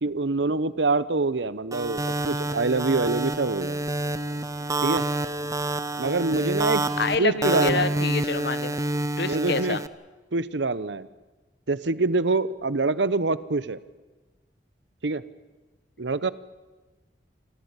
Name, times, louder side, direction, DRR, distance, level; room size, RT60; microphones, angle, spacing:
voice 1, 0.0-3.8 4.8-5.0 6.0-6.8 7.2-8.1 9.3-9.8 10.3-11.1 11.7-13.8 15.0-15.2 16.0-16.3, right 3 dB, 85° right, 16 dB, 0.9 m, -25 dB
sound 1, 1.7-9.9, right 2 dB, 20° right, 0.7 m, -28 dB
voice 2, 7.0-8.8 9.2-9.8, left 4 dB, 65° left, 15 dB, 1.0 m, -27 dB
26.5 x 15.0 x 9.8 m, 1.2 s
head